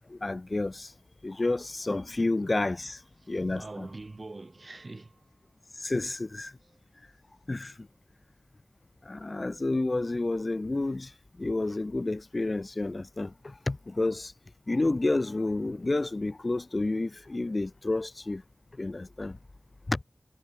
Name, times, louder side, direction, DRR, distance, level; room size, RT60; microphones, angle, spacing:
voice 1, 0.1-0.9 1.2-3.0 3.3-3.9 5.8-6.5 7.5-7.7 9.1-11.1 11.4-13.3 13.7-14.3 14.7-18.4 18.8-19.4 19.9-20.0, left 2 dB, 45° left, 0.3 m, -30 dB
voice 2, 3.2-5.3 5.9-6.1 6.6-6.8, right 2 dB, 50° right, 0.4 m, -44 dB
wide cardioid pair, 80°, 0 cm